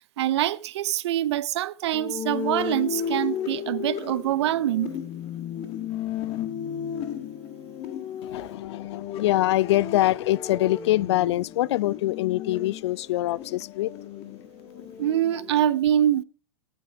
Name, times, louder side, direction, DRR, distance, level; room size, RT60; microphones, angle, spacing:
voice 1, 0.2-5.0 15.0-16.2, right 12 dB, 70° right, 0.7 m, -24 dB
sound 1, 1.9-15.6, left 8 dB, 40° left, 1.4 m, -34 dB
voice 2, 8.2-13.9, left 16 dB, 65° left, 0.4 m, -24 dB
17.5 x 8.9 x 3.5 m
hypercardioid pair, 115°, 15 cm